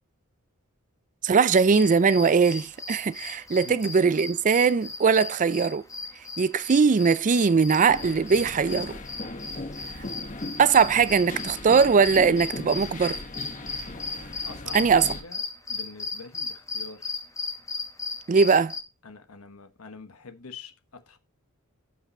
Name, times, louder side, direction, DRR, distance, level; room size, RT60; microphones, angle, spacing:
voice 1, 1.2-5.8 6.4-8.9 10.6-13.2 14.7-15.1 18.3-18.7, right 5 dB, 35° right, 0.4 m, -20 dB
sound 1, 1.5-18.8, left 4 dB, 15° left, 1.7 m, -37 dB
sound 2, 7.9-15.2, left 2 dB, 35° left, 1.4 m, -38 dB
voice 2, 14.4-17.1 19.0-21.2, left 4 dB, 70° left, 1.2 m, -45 dB
10.5 x 5.8 x 4.2 m
head